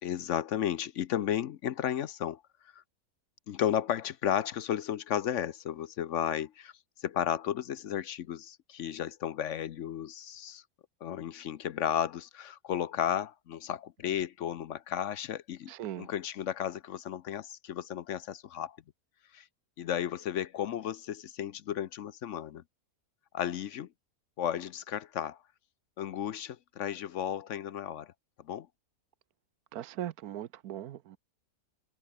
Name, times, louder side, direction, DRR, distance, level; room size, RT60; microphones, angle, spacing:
voice 1, 0.0-2.4 2.7-2.8 3.5-10.6 11.0-18.8 19.3-19.5 19.8-22.6 23.3-23.9 24.4-25.4 26.0-28.1 28.4-28.7, left 10 dB, 60° left, 0.9 m, -33 dB
voice 2, 15.7-16.1 29.7-31.2, right 12 dB, 75° right, 1.3 m, -39 dB
omnidirectional pair, 1.6 m